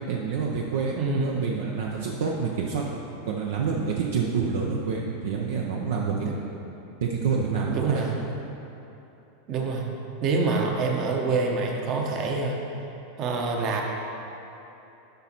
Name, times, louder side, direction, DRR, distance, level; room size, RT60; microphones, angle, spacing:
voice 1, 0.1-6.3 7.0-8.3, right 5 dB, 60° right, -1 dB, 0.6 m, -28 dB
voice 2, 0.9-1.4 6.2-6.3 7.7-8.1 9.5-9.8 10.2-12.6 13.2-13.8, right 3 dB, 40° right, 1 dB, 1.0 m, -26 dB
11.5 x 5.8 x 3.0 m, 3.0 s
figure-of-eight pair, 85°, 0 cm